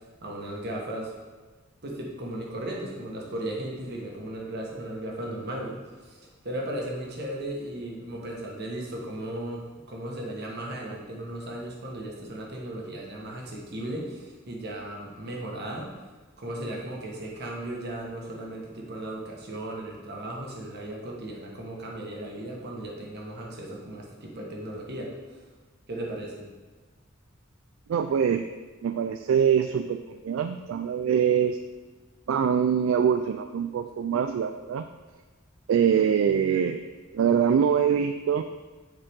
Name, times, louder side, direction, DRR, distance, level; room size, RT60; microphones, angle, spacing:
voice 1, 0.2-1.1 1.8-15.9 16.4-25.4 25.9-26.5, right 1 dB, 55° right, -2 dB, 1.4 m, -36 dB
voice 2, 27.9-28.4 28.8-31.6 32.3-34.8 35.7-36.8 37.1-38.4, right 7 dB, 70° right, 8 dB, 0.3 m, -24 dB
7.3 x 4.7 x 3.6 m, 1.4 s
head